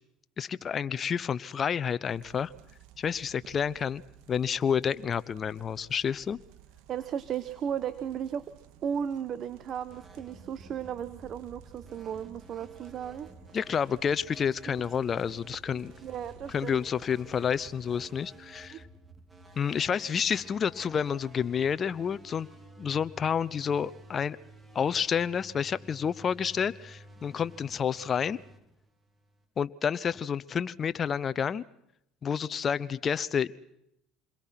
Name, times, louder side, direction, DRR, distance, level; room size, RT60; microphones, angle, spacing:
voice 1, 0.4-2.5 3.0-4.0 4.3-6.4 13.5-15.9 16.5-18.8 19.6-22.5 22.8-24.4 24.7-28.4 29.6-31.6 32.2-33.5, left 7 dB, 35° left, 16 dB, 0.9 m, -29 dB
sound 1, 2.1-18.1, right 11 dB, 70° right, 2.0 m, -56 dB
voice 2, 6.9-8.5 8.8-13.3 16.0-16.8 18.7-18.8, right 8 dB, 50° right, 13 dB, 1.3 m, -35 dB
sound 2, 9.9-29.5, right 1 dB, 20° right, 3.0 m, -52 dB
28.0 x 22.0 x 6.0 m, 0.81 s
supercardioid pair, 85°, 0 cm